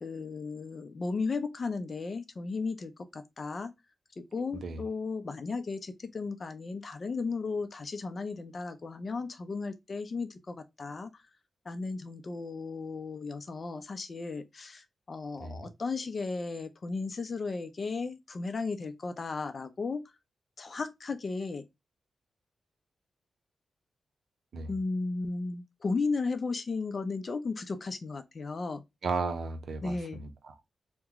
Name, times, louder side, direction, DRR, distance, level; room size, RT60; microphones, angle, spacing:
voice 1, 0.0-3.7 4.2-11.1 11.7-20.1 20.6-21.6 24.7-28.8 29.8-30.2, left 4 dB, 50° left, 0.6 m, -35 dB
voice 2, 4.5-4.8 15.4-15.7 24.5-24.7 29.0-30.5, right 4 dB, 75° right, 0.7 m, -35 dB
2.9 x 2.2 x 3.6 m
cardioid pair, 65°, 0 cm